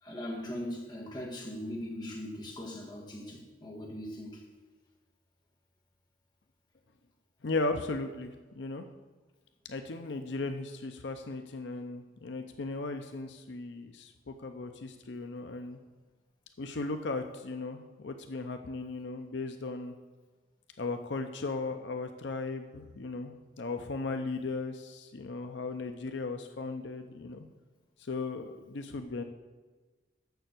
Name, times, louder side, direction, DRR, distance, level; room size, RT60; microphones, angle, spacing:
voice 1, 0.0-4.4, left 1 dB, 20° left, -1 dB, 1.7 m, -40 dB
voice 2, 7.4-8.9 9.7-15.8 16.6-19.9 20.8-27.5 28.0-29.2, left 3 dB, 75° left, 7 dB, 0.6 m, -37 dB
6.9 x 6.6 x 7.7 m, 1.3 s
head